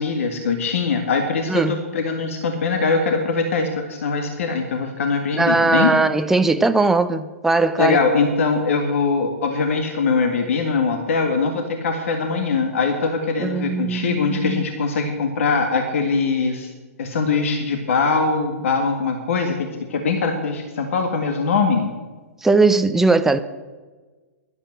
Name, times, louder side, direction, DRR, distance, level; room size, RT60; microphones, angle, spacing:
voice 1, 0.0-5.9 7.8-16.7 17.0-21.9, left 4 dB, 60° left, 1.8 m, -22 dB
voice 2, 1.5-1.8 5.3-8.0 13.4-14.7 22.4-23.4, right 3 dB, 5° right, 0.6 m, -19 dB
11.5 x 11.0 x 7.7 m
figure-of-eight pair, 115°, 8 cm